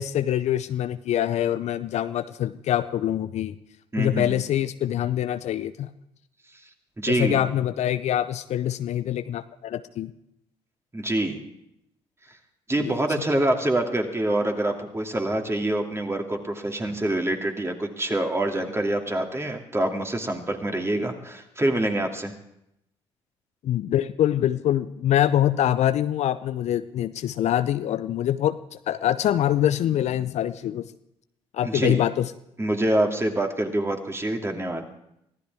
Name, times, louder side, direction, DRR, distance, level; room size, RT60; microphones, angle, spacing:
voice 1, 0.0-3.5 4.0-5.9 7.1-10.1 12.8-13.0 23.6-30.9 31.5-32.3, left 11 dB, 55° left, 13 dB, 0.6 m, -24 dB
voice 2, 3.9-4.4 7.0-7.4 10.9-11.4 12.7-22.3 31.6-32.0 32.6-34.8, right 1 dB, 20° right, 3 dB, 2.6 m, -26 dB
24.0 x 15.5 x 3.6 m, 0.78 s
hypercardioid pair, 45°, 14 cm